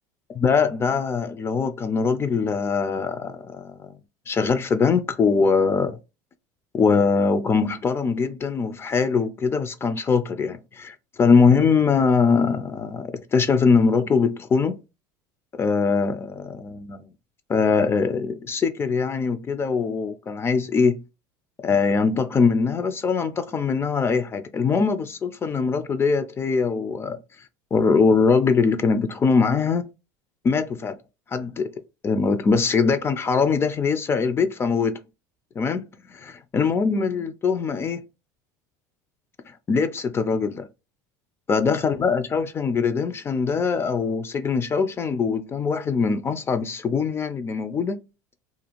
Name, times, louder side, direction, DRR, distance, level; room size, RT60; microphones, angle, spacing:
voice 1, 0.3-3.9 4.3-6.0 6.7-14.8 15.6-17.1 17.5-21.0 21.6-27.2 27.7-29.9 30.4-31.0 31.3-31.7 32.0-35.0 35.6-35.8 36.5-38.0 39.7-40.7 41.5-48.0, left 5 dB, 25° left, 0.3 m, -22 dB
2.5 x 2.3 x 2.9 m
supercardioid pair, 110°, 10 cm